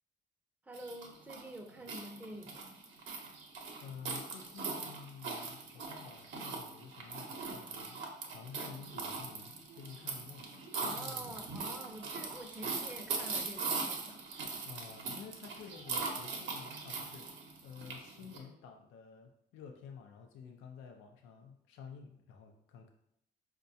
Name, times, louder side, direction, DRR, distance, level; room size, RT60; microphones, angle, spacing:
voice 1, 0.6-2.7 10.8-14.4, right 1 dB, 10° right, 3 dB, 0.5 m, -48 dB
sound 1, 0.7-18.4, right 4 dB, 75° right, 0.7 m, -41 dB
voice 2, 3.8-11.3 14.6-17.3 17.6-22.9, left 6 dB, 90° left, 4 dB, 0.4 m, -51 dB
4.5 x 2.2 x 2.6 m, 0.75 s
cardioid pair, 90°, 20 cm